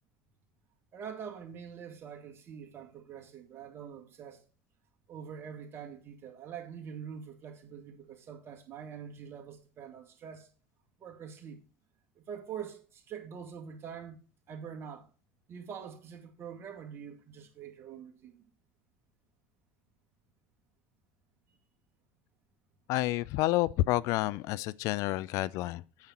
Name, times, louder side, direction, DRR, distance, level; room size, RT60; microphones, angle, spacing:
voice 1, 0.9-4.4 5.1-10.5 11.0-11.6 12.2-14.2 14.5-15.1 15.5-18.4 23.0-23.1, right 7 dB, 40° right, 2.1 m, -44 dB
voice 2, 22.9-25.8, left 17 dB, 60° left, 0.3 m, -29 dB
8.8 x 7.3 x 4.3 m
hypercardioid pair, 80°, 6 cm